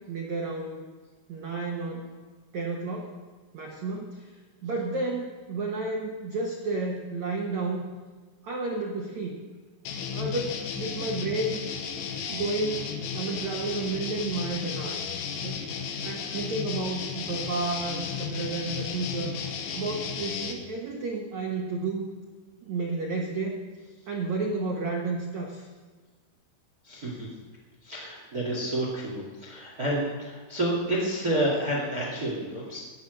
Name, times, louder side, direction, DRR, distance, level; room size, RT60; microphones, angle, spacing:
voice 1, 0.1-0.9 1.3-2.1 2.5-3.1 3.5-4.3 4.6-7.9 8.4-9.4 10.1-11.6 12.3-15.0 15.4-15.6 16.0-19.4 19.7-22.1 22.6-23.6 24.1-25.7, right 3 dB, 80° right, -1 dB, 1.6 m, -31 dB
sound 1, 9.9-20.5, left 6 dB, 70° left, 2.8 m, -34 dB
voice 2, 26.8-27.3 27.8-32.8, right 1 dB, 30° right, -3 dB, 1.8 m, -29 dB
18.5 x 7.4 x 6.5 m, 1.4 s
omnidirectional pair, 5.5 m